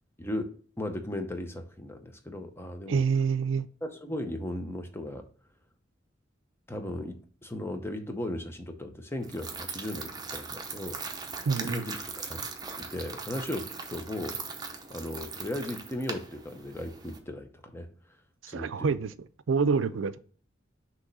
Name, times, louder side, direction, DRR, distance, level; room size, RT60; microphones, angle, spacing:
voice 1, 0.2-3.0 3.8-5.3 6.7-11.0 11.6-12.5 12.8-14.4 14.9-17.9 18.5-18.9, left 1 dB, 15° left, 0.7 m, -36 dB
voice 2, 2.9-3.7 11.4-11.8 18.4-20.2, right 5 dB, 90° right, 0.4 m, -27 dB
sound 1, 9.2-17.2, right 4 dB, 20° right, 0.8 m, -40 dB
6.2 x 3.0 x 5.4 m
head